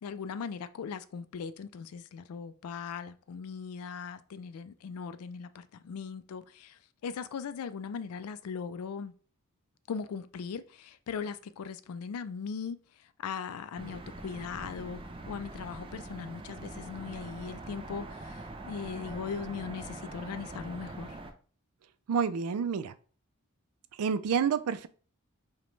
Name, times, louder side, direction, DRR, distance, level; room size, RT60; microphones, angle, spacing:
voice 1, 0.0-9.1 9.9-12.8 13.2-15.0 15.3-21.2, left 6 dB, 80° left, 0.3 m, -39 dB
sound 1, 13.7-21.3, right 2 dB, 25° right, 0.4 m, -43 dB
voice 2, 22.1-22.9 24.0-24.9, right 6 dB, 85° right, 0.4 m, -28 dB
4.9 x 2.2 x 3.1 m
head